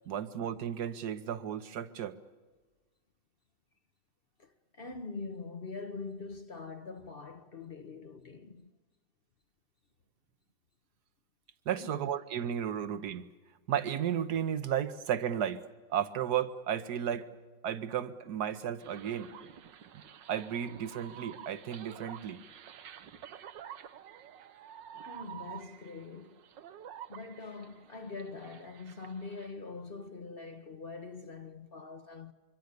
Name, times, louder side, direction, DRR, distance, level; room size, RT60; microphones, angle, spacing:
voice 1, 0.1-2.2 11.7-13.3 13.7-15.6 15.9-17.3 17.6-19.3 20.3-22.4, right 9 dB, 65° right, 1.5 m, -33 dB
voice 2, 4.4-8.7 11.7-12.0 25.1-26.4 27.1-32.3, left 4 dB, 40° left, 0.9 m, -43 dB
sound 1, 18.8-29.5, right 10 dB, 80° right, 1.7 m, -50 dB
26.0 x 24.0 x 6.7 m
omnidirectional pair, 1.9 m